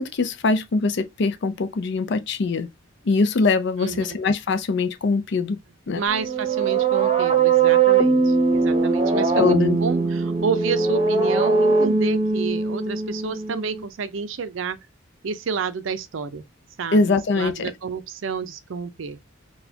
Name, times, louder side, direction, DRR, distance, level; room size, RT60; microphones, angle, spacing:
voice 1, 0.0-2.7 3.1-5.6 5.9-6.0 9.4-9.8 16.9-17.7, left 3 dB, 55° left, 0.4 m, -22 dB
voice 2, 3.8-4.2 5.9-14.8 15.2-16.4 16.8-19.2, right 5 dB, 70° right, 0.5 m, -30 dB
sound 1, 6.1-13.8, right 4 dB, 30° right, 0.8 m, -20 dB
4.0 x 2.3 x 2.7 m
head